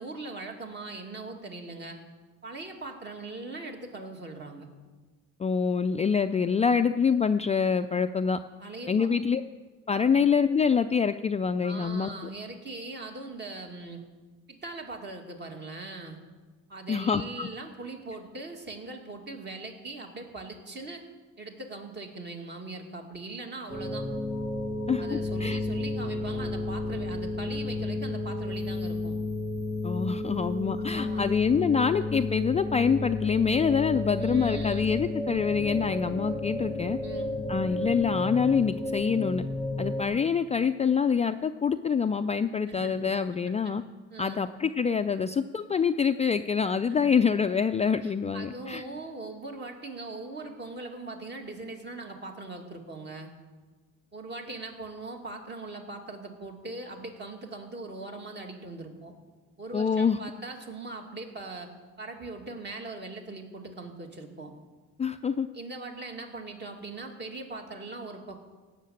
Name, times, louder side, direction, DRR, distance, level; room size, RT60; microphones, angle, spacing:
voice 1, 0.0-2.0 2.4-4.7 8.6-9.1 11.6-14.0 14.5-16.2 16.7-21.0 21.4-24.1 25.0-29.2 30.8-31.3 34.2-34.8 37.0-37.3 42.7-43.1 43.6-43.7 44.1-44.4 48.0-53.3 54.1-59.1 59.6-61.7 62.0-64.5 65.5-68.4, right 3 dB, 35° right, 2 dB, 2.2 m, -40 dB
voice 2, 5.4-8.4 8.9-9.4 9.9-12.1 16.9-17.5 24.9-25.6 29.8-37.0 37.5-39.4 39.8-43.8 44.2-48.8 59.7-60.2 65.0-65.5, left 6 dB, 20° left, 8 dB, 0.3 m, -26 dB
sound 1, 23.7-40.0, left 2 dB, ahead, 1.3 m, -32 dB
17.5 x 6.7 x 8.6 m, 1.3 s
cardioid pair, 135°, 30 cm